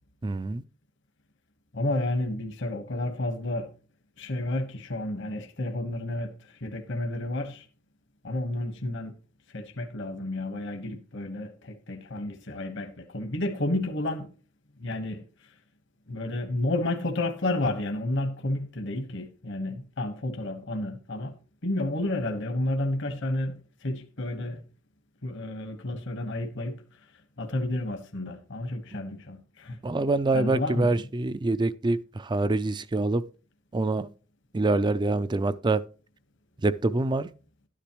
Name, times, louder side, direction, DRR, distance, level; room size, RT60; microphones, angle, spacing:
voice 1, 0.2-0.6 29.8-33.2 33.7-34.1 34.5-35.8 36.6-37.3, right 2 dB, 20° right, 0.4 m, -25 dB
voice 2, 1.7-3.7 4.2-6.3 6.6-7.6 8.2-9.1 9.5-14.3 14.8-15.2 16.1-21.3 21.6-24.6 25.2-26.8 27.4-29.8 30.3-30.9, left 1 dB, 60° left, 1.3 m, -31 dB
12.5 x 10.0 x 3.0 m
head